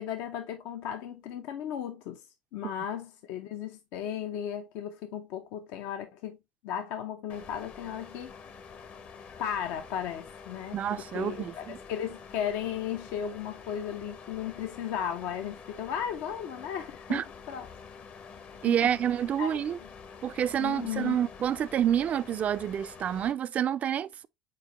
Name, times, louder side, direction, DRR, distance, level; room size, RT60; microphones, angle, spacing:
voice 1, 0.0-2.2 2.5-6.4 6.6-8.3 9.4-17.7 18.7-18.9 19.4-19.5 20.6-21.2, left 9 dB, 70° left, 0.5 m, -35 dB
sound 1, 7.3-23.3, left 5 dB, 50° left, 0.9 m, -47 dB
voice 2, 10.7-11.8 17.1-17.2 18.6-19.8 20.2-24.3, right 9 dB, 40° right, 0.3 m, -28 dB
4.6 x 4.1 x 2.8 m
hypercardioid pair, 75°, 4 cm